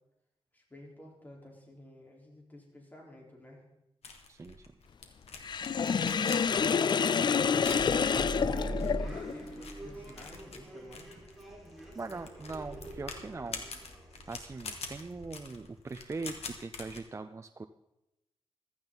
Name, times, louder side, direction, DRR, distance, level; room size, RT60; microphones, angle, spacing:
voice 1, 0.5-3.6 5.8-6.4 6.9-11.3, equal, 15° left, -2 dB, 4.3 m, -49 dB
sound 1, 4.0-17.0, left 4 dB, 90° left, 1.8 m, -46 dB
voice 2, 4.3-4.7 11.9-13.6 14.3-17.7, right 3 dB, 30° right, 7 dB, 0.5 m, -41 dB
Sink (filling or washing), 5.4-9.4, left 6 dB, 45° left, 0.4 m, -28 dB
sound 2, 7.6-16.2, right 1 dB, ahead, 4.7 m, -43 dB
15.5 x 14.0 x 4.1 m, 0.90 s
wide cardioid pair, 110°, 10 cm